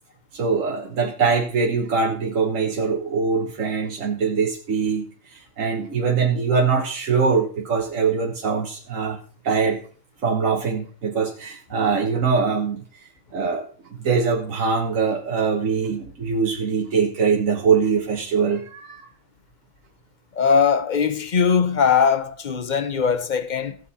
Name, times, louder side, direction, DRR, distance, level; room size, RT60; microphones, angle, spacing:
voice 1, 0.3-9.2 9.4-9.8 10.2-12.8 13.3-19.1, right 5 dB, 75° right, 1.7 m, -23 dB
voice 2, 20.3-23.8, left 6 dB, 40° left, 0.9 m, -20 dB
16.0 x 7.9 x 4.2 m
omnidirectional pair, 1.4 m